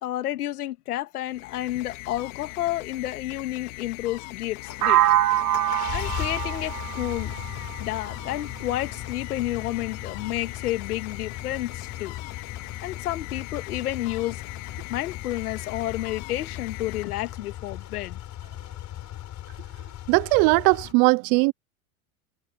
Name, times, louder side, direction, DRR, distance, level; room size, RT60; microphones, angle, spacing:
voice 1, 0.0-5.0 5.9-7.3 7.8-12.2 12.8-14.4 14.9-18.2, left 14 dB, 80° left, 2.4 m, -30 dB
sound 1, 1.2-17.7, left 25 dB, 60° left, 2.5 m, -41 dB
sound 2, 4.5-20.9, left 12 dB, 40° left, 6.0 m, -38 dB
sound 3, 4.8-8.7, right 14 dB, 80° right, 2.2 m, -25 dB
voice 2, 20.1-21.5, right 29 dB, 55° right, 0.8 m, -19 dB
hypercardioid pair, 105°, 44 cm